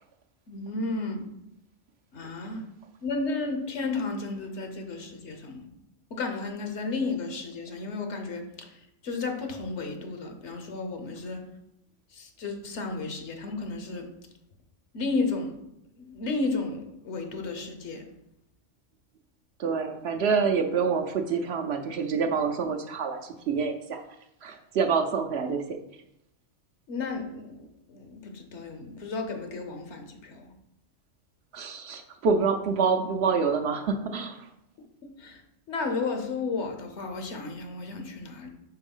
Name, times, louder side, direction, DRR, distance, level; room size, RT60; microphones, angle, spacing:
voice 1, 0.5-1.2 2.1-2.6 3.0-5.7 6.1-8.7 9.0-11.4 12.1-14.1 14.9-15.5 16.0-18.1 26.9-30.5 35.2-35.4 35.7-38.5, left 3 dB, 65° left, 4 dB, 1.1 m, -33 dB
voice 2, 19.6-24.0 24.4-25.8 31.5-34.4, right 5 dB, 65° right, 4 dB, 0.8 m, -27 dB
4.7 x 4.0 x 5.3 m, 0.82 s
omnidirectional pair, 1.3 m